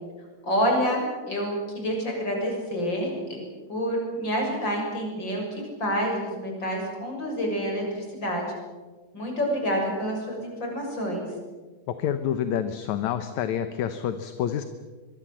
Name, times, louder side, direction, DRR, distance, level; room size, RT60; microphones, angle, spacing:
voice 1, 0.4-3.4 3.7-8.4 9.1-11.3, equal, 30° left, 1 dB, 7.6 m, -28 dB
voice 2, 11.9-14.6, left 9 dB, 65° left, 9 dB, 2.1 m, -28 dB
25.0 x 22.0 x 7.6 m, 1.3 s
omnidirectional pair, 3.9 m